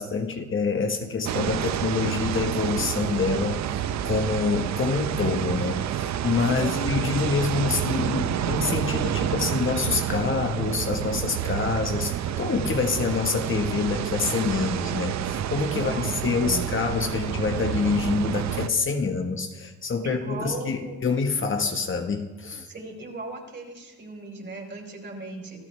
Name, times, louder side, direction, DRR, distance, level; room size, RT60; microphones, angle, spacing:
voice 1, 0.0-3.6 4.0-15.9 16.2-22.7, left 4 dB, 40° left, 4 dB, 1.5 m, -26 dB
sound 1, 1.3-18.7, right 10 dB, 65° right, 0.7 m, -29 dB
voice 2, 6.5-6.9 15.7-16.1 16.4-16.6 20.0-21.0 22.7-25.7, right 2 dB, 40° right, 0 dB, 4.9 m, -37 dB
26.0 x 14.5 x 3.5 m, 1.2 s
cardioid pair, 90°, 30 cm